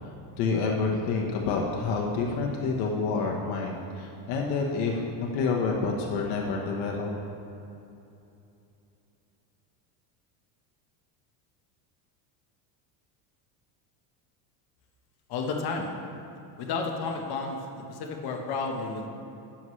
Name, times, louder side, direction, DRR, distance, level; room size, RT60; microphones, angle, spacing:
voice 1, 0.4-7.1, left 4 dB, 85° left, 0 dB, 1.3 m, -28 dB
voice 2, 15.3-15.9 16.6-19.1, left 4 dB, 50° left, 2 dB, 1.4 m, -32 dB
13.5 x 9.6 x 3.2 m, 2.8 s
cardioid pair, 145°, 49 cm